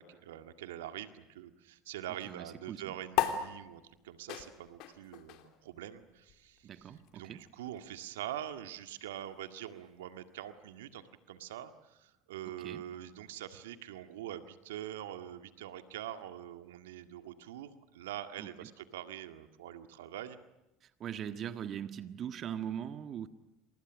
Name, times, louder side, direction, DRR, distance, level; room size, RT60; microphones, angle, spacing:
voice 1, 0.0-6.9 7.1-20.4, right 11 dB, 80° right, 8 dB, 1.9 m, -44 dB
voice 2, 2.2-2.8 6.6-7.4 12.5-12.8 18.4-18.7 20.8-23.3, right 9 dB, 45° right, 9 dB, 1.5 m, -41 dB
sound 1, 3.1-9.9, left 11 dB, 65° left, 2.9 m, -39 dB
29.0 x 27.0 x 6.3 m, 0.95 s
hypercardioid pair, 70°, 0 cm